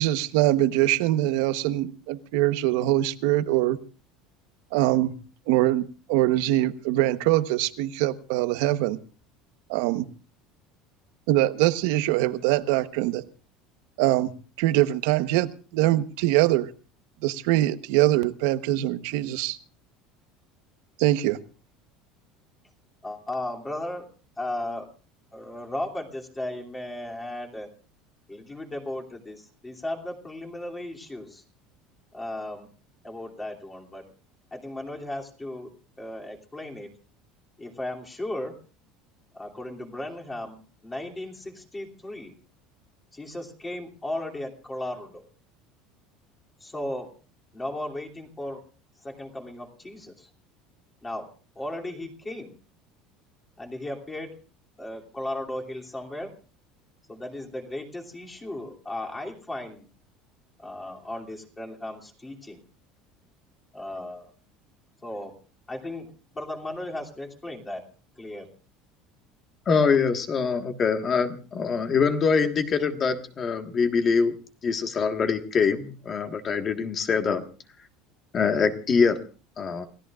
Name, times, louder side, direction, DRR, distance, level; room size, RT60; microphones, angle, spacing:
voice 1, 0.0-3.8 4.7-5.1 5.5-9.0 9.7-10.1 11.3-13.2 14.0-14.3 14.6-16.7 17.2-19.6 21.0-21.4, right 15 dB, 75° right, 12 dB, 1.1 m, -23 dB
voice 2, 23.0-24.1 24.4-24.9 25.3-27.7 28.3-31.4 32.1-32.7 33.0-34.1 34.5-35.7 36.0-36.9 37.6-38.6 39.3-42.3 43.1-45.2 46.6-47.1 47.5-48.6 49.0-50.3 51.0-52.5 53.6-54.4 54.8-56.3 57.1-59.9 60.6-62.6 63.7-64.3 65.0-65.3 65.7-67.8 68.2-68.5, left 1 dB, 10° left, 0 dB, 2.8 m, -36 dB
voice 3, 69.7-74.3 74.6-77.4 78.3-79.2 79.6-79.8, left 5 dB, 25° left, 6 dB, 1.6 m, -24 dB
29.0 x 17.0 x 2.5 m, 0.36 s
cardioid pair, 160°, 0 cm